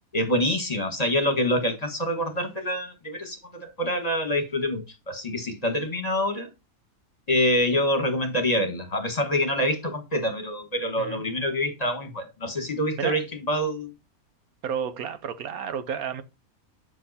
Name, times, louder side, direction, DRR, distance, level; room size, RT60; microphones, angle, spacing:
voice 1, 0.1-6.5 7.3-13.9, equal, 30° left, 1.5 m, -26 dB
voice 2, 11.0-11.5 13.0-13.2 14.6-16.2, right 7 dB, 90° right, 1.3 m, -32 dB
7.6 x 5.3 x 4.2 m
omnidirectional pair, 1.5 m